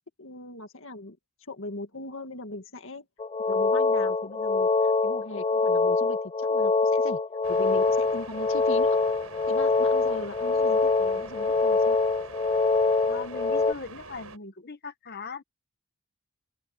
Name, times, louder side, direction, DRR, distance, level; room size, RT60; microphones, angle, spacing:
voice 1, 0.2-1.2 1.5-3.1 3.5-7.2 7.5-9.0 9.5-12.0, left 2 dB, 65° left, 2.0 m, -39 dB
sound 1, 3.2-13.7, left 3 dB, 25° left, 0.3 m, -24 dB
sound 2, 7.4-14.4, right 4 dB, 85° right, 6.3 m, -45 dB
voice 2, 13.1-15.4, left 4 dB, 45° left, 1.2 m, -39 dB
open air
head